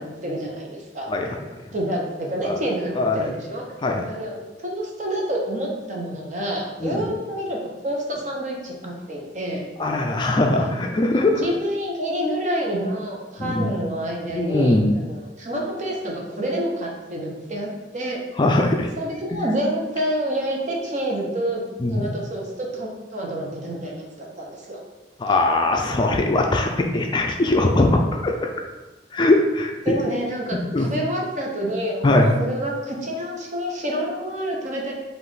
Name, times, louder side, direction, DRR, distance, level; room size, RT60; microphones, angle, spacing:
voice 1, 0.0-1.1 1.7-3.6 4.1-7.6 7.8-9.9 10.6-10.8 11.4-18.2 19.0-21.6 21.9-24.8 29.8-34.9, right 1 dB, 45° right, -1 dB, 0.9 m, -28 dB
voice 2, 3.0-3.3 3.8-4.1 6.8-7.1 9.8-11.5 13.4-13.7 14.3-15.0 18.4-18.9 21.8-22.1 25.2-28.5 29.1-30.0 30.5-30.9 32.0-32.3, left 2 dB, 25° left, 2 dB, 0.3 m, -21 dB
5.3 x 2.5 x 3.8 m, 1.2 s
head